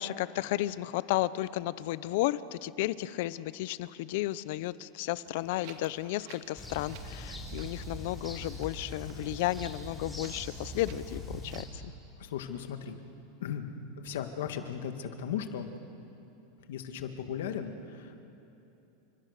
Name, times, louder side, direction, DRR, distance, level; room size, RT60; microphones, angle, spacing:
voice 1, 0.0-11.9, left 16 dB, 55° left, 17 dB, 0.7 m, -33 dB
Wind, 5.3-11.7, right 7 dB, 55° right, 2.2 m, -53 dB
sound 1, 6.6-11.6, left 1 dB, 5° left, 3.6 m, -42 dB
voice 2, 12.2-13.0 13.4-13.7 14.0-15.7 16.7-18.2, left 8 dB, 85° left, 7 dB, 2.0 m, -36 dB
30.0 x 26.0 x 6.7 m, 2.9 s
supercardioid pair, 165°, 0 cm